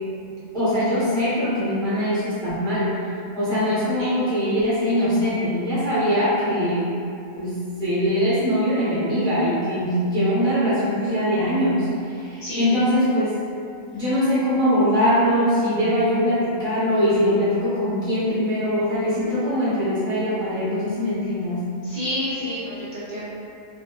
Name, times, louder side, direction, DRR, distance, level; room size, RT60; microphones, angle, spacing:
voice 1, 0.3-3.0 3.3-6.9 7.4-13.4 13.9-21.7, equal, 5° left, -12 dB, 0.3 m, -22 dB
voice 2, 19.2-19.8 21.8-23.3, left 1 dB, 85° right, -14 dB, 0.3 m, -30 dB
2.8 x 2.1 x 2.2 m, 2.5 s
omnidirectional pair, 1.5 m